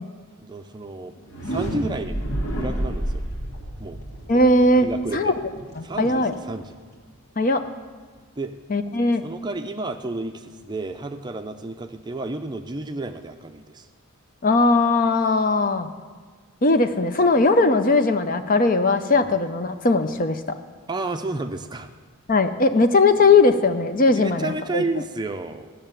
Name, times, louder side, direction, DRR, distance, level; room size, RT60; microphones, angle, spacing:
voice 1, 0.4-1.1 1.5-2.2 2.6-3.2 3.8-4.0 4.8-5.3 5.8-6.7 8.4-8.5 9.2-13.9 20.9-21.9 24.1-25.7, right 2 dB, 20° right, 7 dB, 0.5 m, -31 dB
sound 1, 1.2-7.0, right 1 dB, 75° left, 2.1 m, -31 dB
voice 2, 4.3-4.9 5.1-5.3 5.8-6.3 7.4-7.6 8.7-9.2 14.4-15.9 16.6-20.4 22.3-24.8, left 3 dB, 40° left, 9 dB, 0.6 m, -19 dB
14.5 x 6.7 x 8.9 m, 1.5 s
head